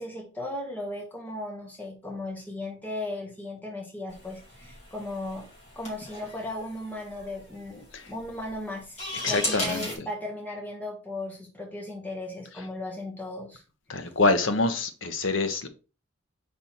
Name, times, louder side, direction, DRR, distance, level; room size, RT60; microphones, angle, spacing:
voice 1, 0.0-5.5 5.7-9.0 9.3-13.6, left 1 dB, 10° left, 1.5 m, -36 dB
sound 1, 4.1-10.0, left 1 dB, 35° left, 2.7 m, -37 dB
voice 2, 9.2-10.1 12.6-12.7 13.9-15.7, left 3 dB, 75° left, 0.9 m, -26 dB
5.5 x 4.1 x 4.4 m
head